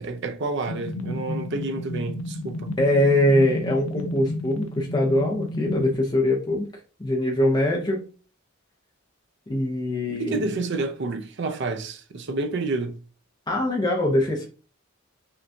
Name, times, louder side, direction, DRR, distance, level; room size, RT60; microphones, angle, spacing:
voice 1, 0.0-2.7 10.1-13.0, right 3 dB, 55° right, 0.6 m, -29 dB
sound 1, 0.7-5.9, left 1 dB, 90° left, 0.5 m, -32 dB
voice 2, 2.8-6.7 7.0-8.1 9.5-10.5 13.5-14.5, left 1 dB, 20° left, 0.6 m, -22 dB
5.8 x 2.3 x 2.6 m
head